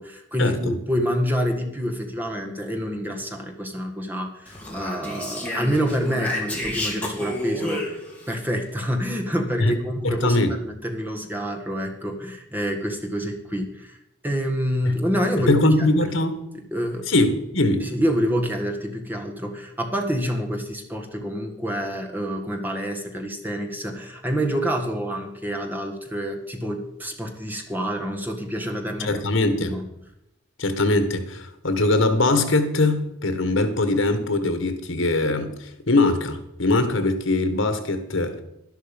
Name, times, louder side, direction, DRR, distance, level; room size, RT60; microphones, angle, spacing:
voice 1, 0.0-8.0 8.3-14.0 14.2-15.9 16.7-17.1 17.8-29.2 29.6-29.9, equal, 10° right, 2 dB, 1.6 m, -27 dB
Speech, 4.5-8.4, left 1 dB, 5° left, 2.7 m, -30 dB
voice 2, 10.0-10.5 15.5-16.4 17.1-17.8 29.0-29.8 30.6-38.4, left 2 dB, 80° left, 9 dB, 1.6 m, -21 dB
12.0 x 11.5 x 5.3 m, 0.85 s
head